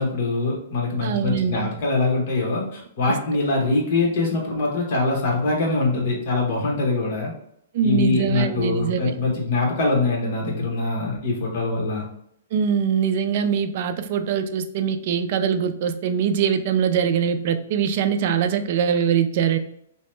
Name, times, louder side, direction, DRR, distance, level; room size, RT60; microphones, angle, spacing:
voice 1, 0.0-7.3 7.8-12.0, left 3 dB, 45° left, -2 dB, 1.1 m, -23 dB
voice 2, 1.0-1.7 3.1-3.2 7.7-9.1 12.5-19.6, right 7 dB, 45° right, 8 dB, 0.3 m, -22 dB
2.9 x 2.1 x 3.1 m, 0.72 s
hypercardioid pair, 160°, 0 cm